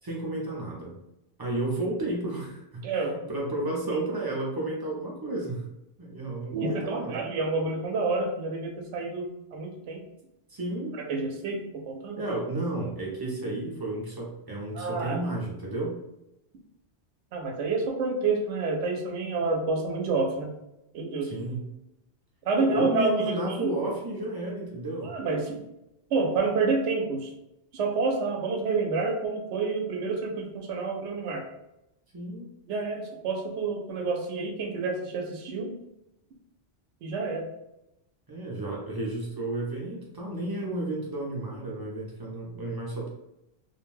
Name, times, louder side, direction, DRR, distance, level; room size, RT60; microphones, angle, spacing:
voice 1, 0.0-0.9 1.4-2.9 3.3-5.7 6.0-7.2 10.5-11.0 12.2-15.9 21.2-21.7 22.5-25.1 32.1-32.5 38.3-43.1, right 2 dB, 25° right, -3 dB, 0.5 m, -32 dB
voice 2, 2.8-3.2 6.5-10.0 11.0-12.2 14.7-15.2 17.3-20.5 20.9-21.3 22.5-23.8 25.0-25.6 26.1-27.3 27.7-31.5 32.7-35.7 37.0-37.5, right 3 dB, 75° right, 1 dB, 0.9 m, -29 dB
2.5 x 2.2 x 3.1 m, 0.88 s
omnidirectional pair, 1.2 m